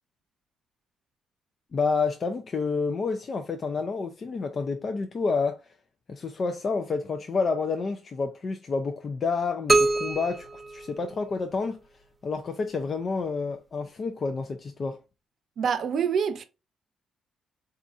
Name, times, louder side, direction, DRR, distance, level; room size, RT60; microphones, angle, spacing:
voice 1, 1.7-5.6 6.1-11.8 12.2-15.0, left 4 dB, 45° left, 0.4 m, -29 dB
sound 1, 9.7-11.6, right 3 dB, 10° right, 0.5 m, -25 dB
voice 2, 15.6-16.4, right 7 dB, 60° right, 0.7 m, -26 dB
4.2 x 2.4 x 2.5 m
cardioid pair, 90°, 0 cm